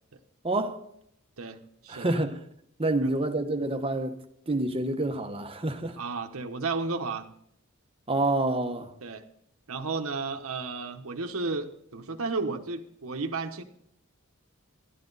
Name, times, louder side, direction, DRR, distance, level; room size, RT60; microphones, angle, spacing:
voice 1, 0.4-0.8 1.9-2.4 2.8-4.2 4.5-6.0 8.1-8.9, right 2 dB, 25° right, 1.1 m, -28 dB
voice 2, 1.4-2.2 3.0-3.1 6.0-7.3 9.0-9.2 9.7-13.6, right 3 dB, 75° right, 1.0 m, -33 dB
12.0 x 12.0 x 4.0 m
head